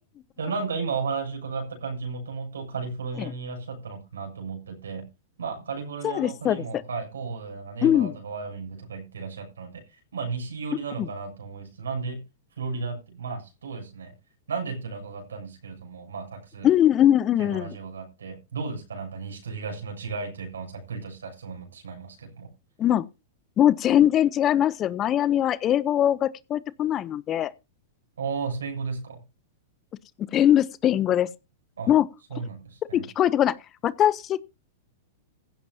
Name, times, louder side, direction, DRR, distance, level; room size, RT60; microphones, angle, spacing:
voice 1, 0.4-5.1 5.4-12.2 12.6-14.1 14.5-16.7 17.4-22.5 28.2-29.2 31.8-31.9 32.3-33.0, right 5 dB, 80° right, 7.2 m, -34 dB
voice 2, 6.0-6.8 7.8-8.1 11.0-11.1 16.6-17.7 22.8-23.1 23.6-27.5 30.3-31.3 31.9-32.1 32.9-33.6 33.8-34.4, left 11 dB, 30° left, 0.7 m, -21 dB
16.0 x 13.0 x 2.8 m
hypercardioid pair, 105°, 0 cm